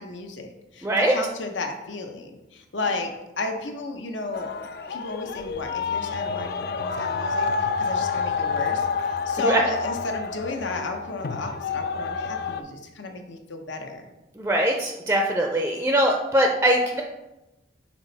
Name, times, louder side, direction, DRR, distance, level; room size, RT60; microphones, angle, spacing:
voice 1, 0.0-4.5 4.9-14.0, left 3 dB, 80° left, 5 dB, 0.8 m, -33 dB
voice 2, 0.8-1.2 9.4-9.6 14.4-17.0, right 1 dB, 10° right, 1 dB, 0.4 m, -22 dB
sound 1, 4.3-12.6, left 5 dB, 55° left, 0.3 m, -28 dB
6.1 x 4.2 x 4.0 m, 0.99 s
head